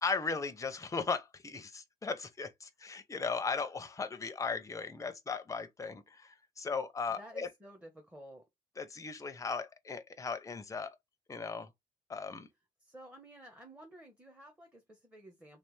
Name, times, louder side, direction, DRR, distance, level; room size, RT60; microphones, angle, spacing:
voice 1, 0.0-7.5 8.8-11.0 11.3-11.7 12.1-12.5, left 4 dB, 20° left, 0.7 m, -37 dB
voice 2, 7.2-8.4 12.8-15.6, right 1 dB, 10° right, 1.0 m, -53 dB
3.4 x 3.3 x 3.2 m
cardioid pair, 145°, 16 cm